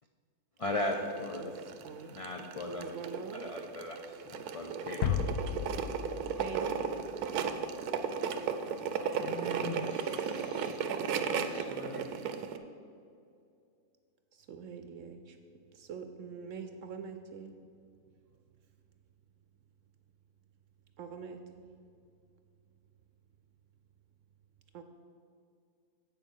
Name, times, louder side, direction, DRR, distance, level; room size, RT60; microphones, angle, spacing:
voice 1, 0.6-1.6 2.1-2.9 3.5-4.0 4.3-5.4, left 1 dB, 55° left, 1 dB, 0.3 m, -36 dB
sound 1, 0.7-12.6, right 6 dB, 90° right, 1.2 m, -35 dB
voice 2, 1.4-2.5 2.8-3.5 6.4-7.0 14.3-15.4 15.7-17.6 21.0-21.6 24.7-24.8, right 6 dB, 65° right, 7 dB, 0.9 m, -44 dB
sound 2, 5.0-7.5, left 8 dB, 85° left, 1.1 m, -34 dB
voice 3, 8.9-11.1 11.4-12.1, left 1 dB, 15° left, 1 dB, 0.9 m, -45 dB
8.3 x 6.7 x 6.3 m, 2.4 s
omnidirectional pair, 1.6 m